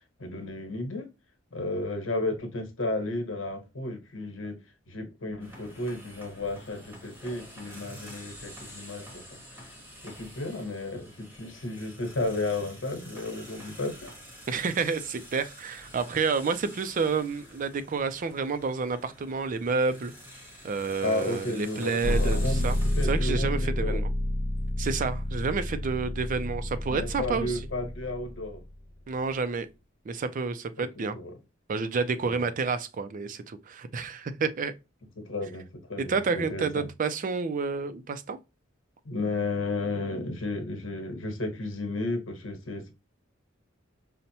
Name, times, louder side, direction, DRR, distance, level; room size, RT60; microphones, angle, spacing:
voice 1, 0.2-1.1 1.5-4.6 4.9-9.7 10.0-14.1 21.0-24.0 26.9-28.6 30.8-31.3 32.2-32.5 35.2-36.9 39.0-42.9, left 2 dB, 75° left, 1.2 m, -33 dB
sound 1, 5.4-23.1, equal, 10° right, 0.9 m, -48 dB
voice 2, 14.5-20.1 20.6-22.8 23.0-24.1 24.8-27.6 29.1-29.7 30.1-31.2 31.7-34.7 36.0-38.4, right 4 dB, 40° right, 0.4 m, -29 dB
sound 2, 22.0-28.9, left 1 dB, 50° left, 0.6 m, -29 dB
5.3 x 2.1 x 2.7 m
head